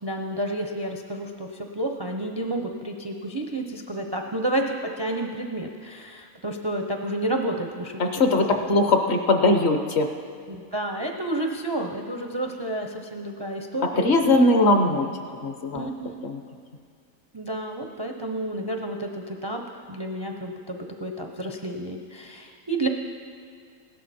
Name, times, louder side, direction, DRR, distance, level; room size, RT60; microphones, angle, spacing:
voice 1, 0.0-8.8 10.5-14.5 15.7-16.3 17.3-22.9, right 1 dB, 30° right, 3 dB, 0.4 m, -30 dB
voice 2, 8.0-10.1 14.0-15.1 15.4-15.9 16.2-16.4, left 2 dB, 50° left, 5 dB, 1.1 m, -20 dB
16.5 x 12.5 x 4.2 m, 2.2 s
omnidirectional pair, 1.5 m